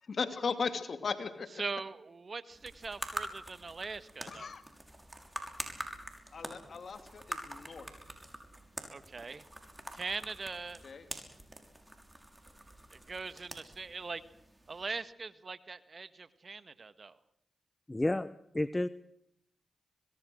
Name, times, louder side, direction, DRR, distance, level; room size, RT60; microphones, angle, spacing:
voice 1, 0.0-1.6 4.3-4.6 6.3-7.9 10.8-11.0, left 5 dB, 65° left, 9 dB, 2.8 m, -37 dB
voice 2, 1.6-4.5 8.9-9.4 9.9-10.8 12.9-14.2 14.7-17.2, right 4 dB, 55° right, 13 dB, 1.6 m, -41 dB
sound 1, 2.5-15.0, right 1 dB, 15° right, 6.0 m, -46 dB
voice 3, 17.9-18.9, left 1 dB, 20° left, 14 dB, 0.9 m, -31 dB
25.0 x 21.5 x 6.4 m, 0.74 s
supercardioid pair, 45°, 0 cm